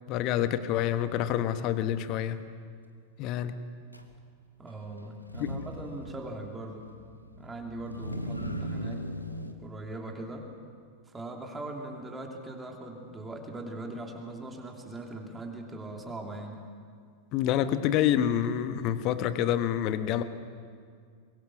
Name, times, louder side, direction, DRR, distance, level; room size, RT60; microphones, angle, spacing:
voice 1, 0.1-2.4 3.2-3.6 5.4-5.5 17.3-20.2, left 10 dB, 40° left, 11 dB, 1.2 m, -27 dB
Motor vehicle (road), 3.9-4.0 5.2-9.5, equal, 90° left, 1.3 m, -38 dB
voice 2, 4.6-6.9 7.4-9.1 9.6-10.5 11.1-16.7, right 2 dB, 15° right, 1 dB, 3.0 m, -40 dB
24.0 x 22.0 x 6.2 m, 2.1 s
figure-of-eight pair, 90°, 0 cm